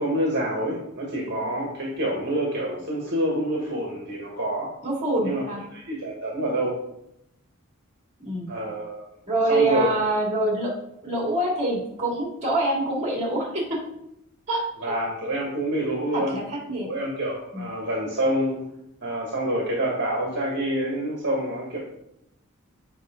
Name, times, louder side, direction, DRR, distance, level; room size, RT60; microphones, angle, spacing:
voice 1, 0.0-4.7 5.2-5.4 5.7-6.8 8.5-9.1 9.5-9.9 14.8-16.4 16.8-18.7 19.0-21.8, right 1 dB, 55° right, -2 dB, 1.5 m, -27 dB
voice 2, 4.8-5.6 8.2-8.5 9.3-10.7 11.0-13.8 14.5-14.6 16.1-16.9 17.5-17.7, right 2 dB, 35° right, -2 dB, 2.5 m, -25 dB
8.0 x 5.2 x 3.8 m, 0.81 s
head